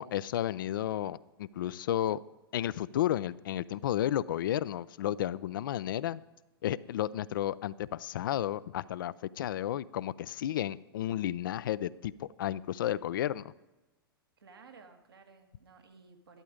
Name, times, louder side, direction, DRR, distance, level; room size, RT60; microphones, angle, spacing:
voice 1, 0.0-2.2 2.5-6.2 6.6-13.5, left 12 dB, 60° left, 19 dB, 0.5 m, -32 dB
voice 2, 14.4-16.4, right 4 dB, 75° right, 4 dB, 1.7 m, -56 dB
13.0 x 12.0 x 5.0 m, 1.1 s
figure-of-eight pair, 100°, 12 cm